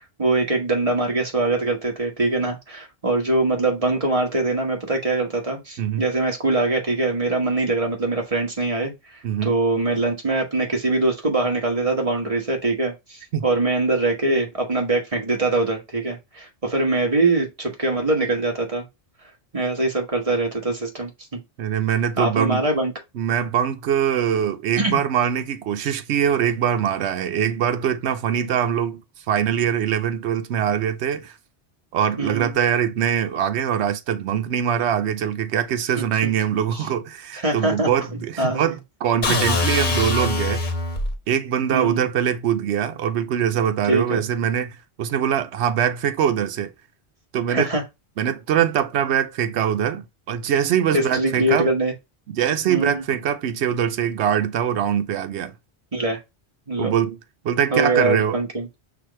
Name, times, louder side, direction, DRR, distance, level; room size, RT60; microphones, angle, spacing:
voice 1, 0.2-8.9 9.4-18.9 19.5-21.4 22.2-22.9 24.8-25.0 32.2-32.5 36.0-36.1 36.7-36.8 37.4-38.7 41.7-42.1 43.9-44.2 47.5-47.8 50.9-51.9 52.7-53.0 55.9-56.2 56.7-56.9 57.7-58.7, right 2 dB, 30° right, 1.3 m, -23 dB
voice 2, 21.6-22.6 23.1-29.0 29.3-31.4 31.9-40.6 41.3-46.7 47.3-47.7 48.2-51.7 52.3-55.5 56.8-57.2 57.4-58.4, right 9 dB, 85° right, 0.9 m, -23 dB
sound 1, 39.2-41.2, left 3 dB, 50° left, 0.9 m, -22 dB
6.0 x 2.5 x 3.0 m
omnidirectional pair, 1.1 m